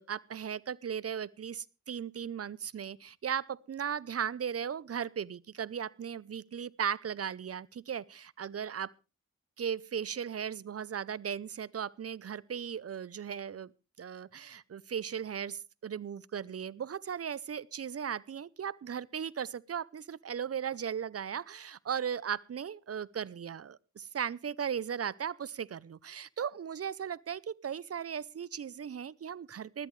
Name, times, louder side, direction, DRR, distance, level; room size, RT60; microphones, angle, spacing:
voice 1, 0.0-8.9 9.6-13.7 14.0-29.9, right 8 dB, 55° right, 0.6 m, -37 dB
19.5 x 13.5 x 3.2 m
cardioid pair, 50°, 29 cm